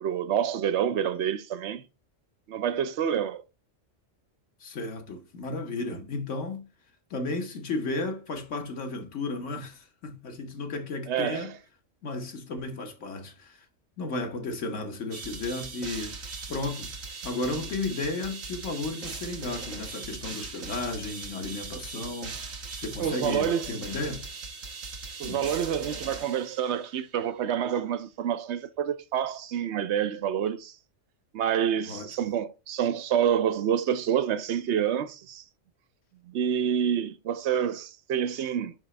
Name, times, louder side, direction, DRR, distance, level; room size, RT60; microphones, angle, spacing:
voice 1, 0.0-1.8 2.5-3.4 11.1-11.5 23.0-23.7 25.2-30.7 31.3-35.4 36.3-38.7, right 9 dB, 65° right, 0.8 m, -28 dB
voice 2, 4.6-6.7 7.1-11.5 12.0-13.6 14.0-16.2 16.5-16.9 17.2-22.4 22.8-24.2 25.2-25.5 31.9-32.1, left 3 dB, 70° left, 1.4 m, -34 dB
sound 1, 15.1-27.0, right 4 dB, 85° right, 1.6 m, -39 dB
6.1 x 4.9 x 3.2 m
omnidirectional pair, 1.3 m